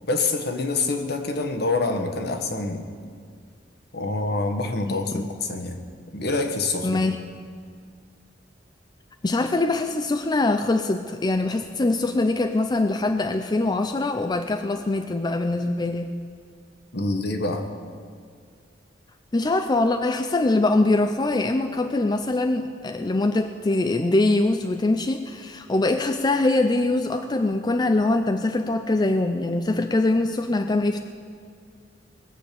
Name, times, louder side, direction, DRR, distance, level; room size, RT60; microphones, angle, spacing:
voice 1, 0.1-2.9 3.9-5.8 6.1-7.0 16.9-17.7, left 3 dB, 60° left, 5 dB, 1.3 m, -26 dB
voice 2, 4.9-5.3 6.8-7.2 9.2-16.1 19.3-31.0, left 2 dB, 25° left, 7 dB, 0.5 m, -23 dB
20.5 x 7.4 x 6.8 m, 2.1 s
head